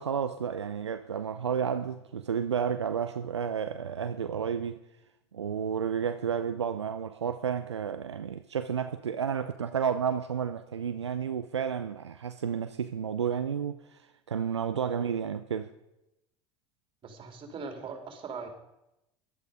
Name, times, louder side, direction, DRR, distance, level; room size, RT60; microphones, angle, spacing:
voice 1, 0.0-4.8 5.3-14.0 14.3-15.7, right 7 dB, 85° right, 0.6 m, -31 dB
voice 2, 17.0-18.5, right 5 dB, 35° right, 3.2 m, -40 dB
17.0 x 12.0 x 5.0 m
figure-of-eight pair, 70°, 14 cm